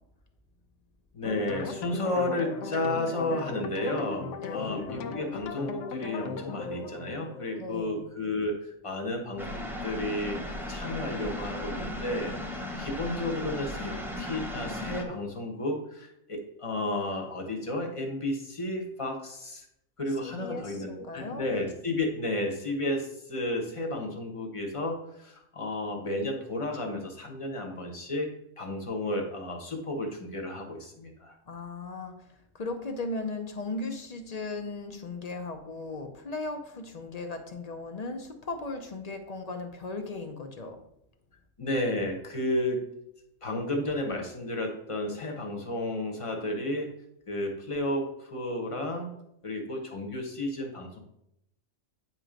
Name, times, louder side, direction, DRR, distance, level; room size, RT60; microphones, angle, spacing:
voice 1, 1.1-10.4 10.7-19.7 20.0-28.3 28.6-31.3 41.6-42.8 43.4-46.9 47.3-49.1 49.4-51.0, left 1 dB, 25° left, 2 dB, 1.1 m, -32 dB
sound 1, 1.2-8.2, left 4 dB, 70° left, 0.9 m, -37 dB
voice 2, 4.4-4.8 7.6-8.0 20.4-21.5 31.5-32.1 32.5-40.8, left 3 dB, 40° left, 6 dB, 0.6 m, -37 dB
sound 2, 9.4-15.0, left 1 dB, ahead, 0.6 m, -36 dB
9.1 x 3.0 x 5.1 m, 0.79 s
omnidirectional pair, 1.4 m